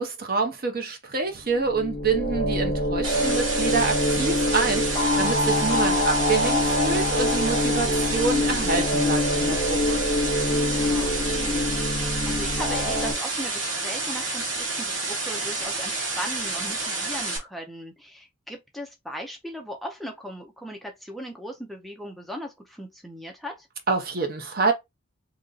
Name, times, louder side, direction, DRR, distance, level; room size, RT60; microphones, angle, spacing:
voice 1, 0.0-10.0 23.9-24.7, right 4 dB, 45° right, 0.7 m, -27 dB
sound 1, 1.5-13.1, left 1 dB, 20° left, 0.9 m, -25 dB
sound 2, 3.0-17.4, right 3 dB, 65° right, 1.2 m, -29 dB
voice 2, 10.5-23.7, equal, ahead, 0.5 m, -38 dB
2.9 x 2.5 x 3.8 m
head